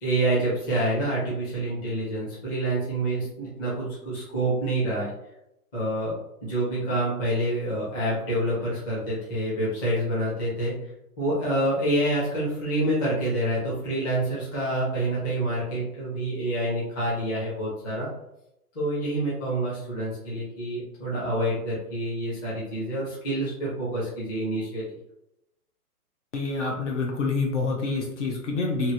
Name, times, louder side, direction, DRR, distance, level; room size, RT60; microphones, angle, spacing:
voice 1, 0.0-5.1 5.7-6.1 6.4-10.7 11.2-18.1 18.7-24.9, right 1 dB, 15° left, -8 dB, 0.7 m, -27 dB
voice 2, 26.3-28.9, left 3 dB, 50° left, 1 dB, 0.7 m, -27 dB
2.9 x 2.5 x 2.7 m, 0.82 s
hypercardioid pair, 150°, 46 cm